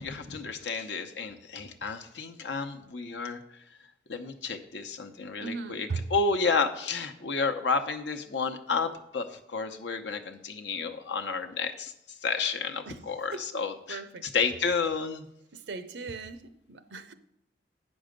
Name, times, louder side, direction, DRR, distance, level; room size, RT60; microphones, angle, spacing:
voice 1, 0.0-3.4 3.7-3.8 4.1-15.3, left 4 dB, 85° left, 0.9 m, -31 dB
voice 2, 5.4-6.0 12.9-13.0 13.3-14.3 15.5-16.4 16.7-17.1, right 4 dB, 80° right, 0.7 m, -38 dB
8.8 x 6.3 x 5.1 m
head